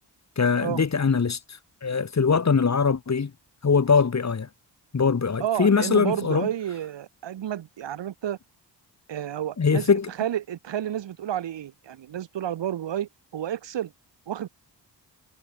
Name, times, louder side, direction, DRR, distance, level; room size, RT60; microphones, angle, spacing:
voice 1, 0.4-1.4 1.8-3.3 3.6-4.5 4.9-6.5 9.6-10.1, left 5 dB, 40° left, 1.7 m, -22 dB
voice 2, 5.4-8.4 9.1-13.9 14.3-14.5, right 11 dB, 80° right, 2.4 m, -31 dB
supercardioid pair, 50°, 43 cm